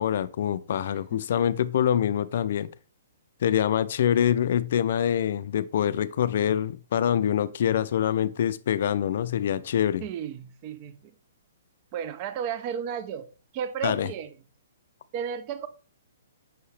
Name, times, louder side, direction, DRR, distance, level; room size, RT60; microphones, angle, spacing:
voice 1, 0.0-2.7 3.4-10.0 13.8-14.1, left 9 dB, 60° left, 0.3 m, -25 dB
voice 2, 10.0-11.1 11.9-13.3 13.5-14.4 15.1-15.7, right 8 dB, 35° right, 0.4 m, -33 dB
5.5 x 2.8 x 3.2 m
hypercardioid pair, 155°, 0 cm